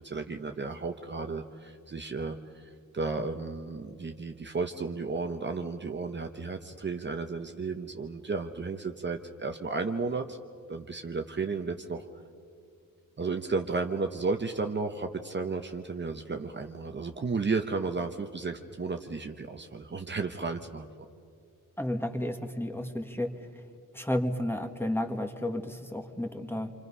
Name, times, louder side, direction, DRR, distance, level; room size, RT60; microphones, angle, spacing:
voice 1, 0.0-10.4 10.7-12.1 13.2-20.9, right 4 dB, 35° right, 5 dB, 0.9 m, -33 dB
voice 2, 21.8-23.3 23.9-26.7, left 1 dB, 5° left, 5 dB, 1.6 m, -32 dB
27.5 x 26.0 x 5.6 m, 2.4 s
wide cardioid pair, 105°, 33 cm